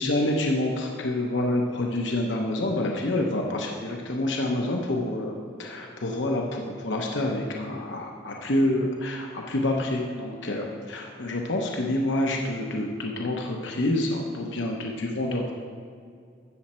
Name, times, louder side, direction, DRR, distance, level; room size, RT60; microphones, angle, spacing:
voice 1, 0.0-15.5, left 1 dB, 70° left, 1 dB, 0.9 m, -27 dB
13.0 x 8.6 x 4.3 m, 2.2 s
head